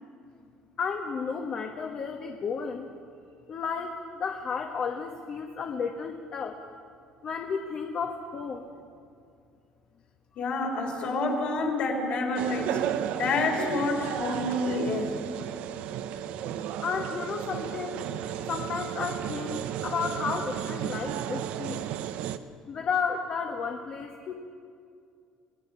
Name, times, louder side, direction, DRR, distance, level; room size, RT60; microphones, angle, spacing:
voice 1, 0.8-2.9 3.5-6.6 7.2-8.7 16.8-18.1 18.3-21.9 22.7-24.3, left 5 dB, 40° left, 3 dB, 1.2 m, -32 dB
voice 2, 10.4-12.8 13.2-15.1, left 2 dB, 55° left, 1 dB, 4.0 m, -28 dB
sound 1, 12.4-22.4, right 10 dB, 65° right, 0.8 m, -33 dB
26.5 x 18.0 x 5.7 m, 2.4 s
cardioid pair, 145°, 2 cm